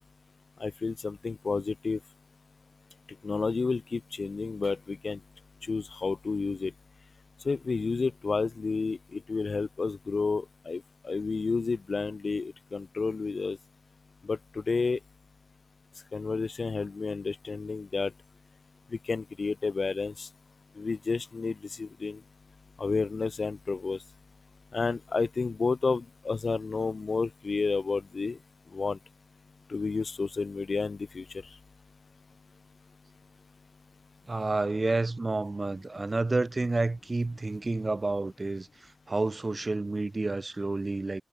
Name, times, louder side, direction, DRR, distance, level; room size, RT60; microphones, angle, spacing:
voice 1, 0.6-2.0 3.2-5.2 5.6-6.7 7.4-13.6 14.2-15.0 16.1-18.1 18.9-20.3 20.7-22.2 22.8-24.0 24.7-28.4 28.7-29.0 29.7-31.6, left 4 dB, 70° left, 3.9 m, -31 dB
voice 2, 34.3-41.2, right 2 dB, 45° right, 3.4 m, -30 dB
wide cardioid pair, 65°, 0 cm